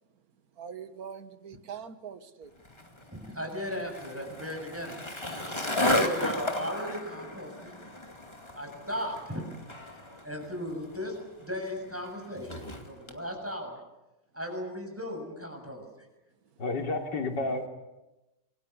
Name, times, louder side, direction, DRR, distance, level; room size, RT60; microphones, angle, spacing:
voice 1, 0.6-2.5 6.3-6.7, right 6 dB, 55° right, 1.9 m, -42 dB
Skateboard, 2.6-13.2, left 1 dB, 15° left, 2.3 m, -34 dB
voice 2, 3.1-5.0 5.9-7.8 8.5-9.5 10.2-11.2 11.4-13.8 14.3-15.8, equal, 5° right, 7.1 m, -36 dB
voice 3, 16.6-17.7, left 2 dB, 70° left, 4.0 m, -30 dB
27.0 x 23.5 x 8.2 m
omnidirectional pair, 2.0 m